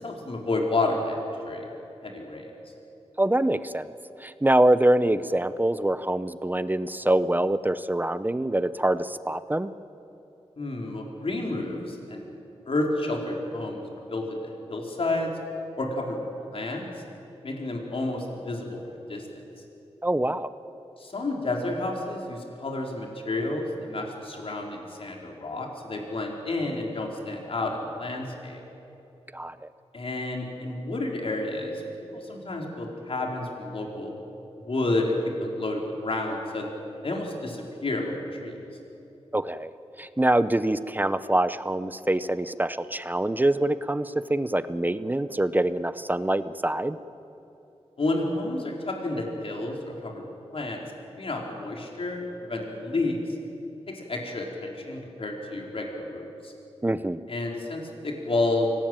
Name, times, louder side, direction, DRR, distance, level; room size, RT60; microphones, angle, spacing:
voice 1, 0.0-1.7 2.0-2.5 10.6-12.2 12.7-13.8 14.1-15.3 15.8-16.2 16.5-16.9 17.4-19.3 21.0-28.6 29.9-31.8 32.1-34.1 34.6-36.7 37.0-38.6 48.0-50.2 50.5-50.8 51.2-53.2 53.9-56.5 57.3-58.7, left 2 dB, 55° left, 0 dB, 4.0 m, -30 dB
voice 2, 3.2-3.9 4.2-9.7 20.0-20.5 29.3-29.6 39.3-39.7 40.0-47.0 56.8-57.2, right 1 dB, 15° right, 14 dB, 0.7 m, -24 dB
24.5 x 18.5 x 9.0 m, 2.9 s
wide cardioid pair, 90°, 11 cm